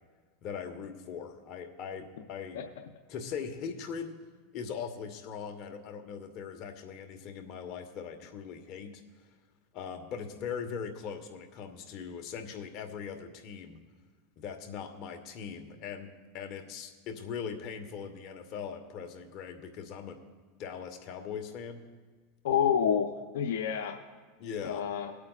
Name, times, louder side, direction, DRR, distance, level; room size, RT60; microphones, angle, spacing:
voice 1, 0.4-2.6 3.1-4.2 4.5-9.0 9.7-13.8 14.4-20.2 20.6-21.8 24.4-24.8, left 6 dB, 50° left, 5 dB, 1.2 m, -40 dB
voice 2, 22.4-24.0 24.6-25.1, left 8 dB, 80° left, 4 dB, 0.7 m, -28 dB
22.5 x 8.5 x 2.4 m, 1.5 s
supercardioid pair, 125°, 0 cm